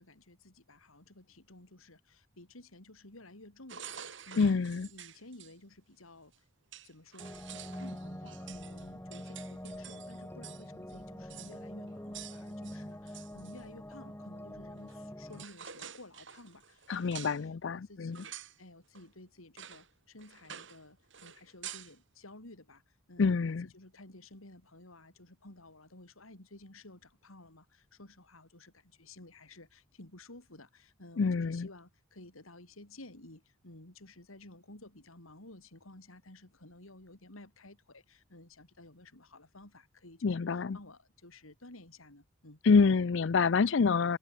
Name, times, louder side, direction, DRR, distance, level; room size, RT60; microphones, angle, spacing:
voice 1, 0.0-4.6 4.9-6.4 6.8-42.6, left 2 dB, 90° left, 4.5 m, -54 dB
sound 1, 3.7-5.5 6.3-6.4 6.7-10.6 10.9-11.0 11.3-11.6 12.1-13.6 14.9-15.0 15.3-17.4 18.1-18.6 18.9-19.1 19.6-19.9 20.2-20.8 21.1-22.0, right 9 dB, 60° right, 7.7 m, -48 dB
voice 2, 4.4-4.9 16.9-18.2 23.2-23.7 31.2-31.7 40.2-40.8 42.6-44.2, left 5 dB, 60° left, 0.5 m, -27 dB
sound 2, 7.2-15.5, equal, 10° left, 3.0 m, -45 dB
head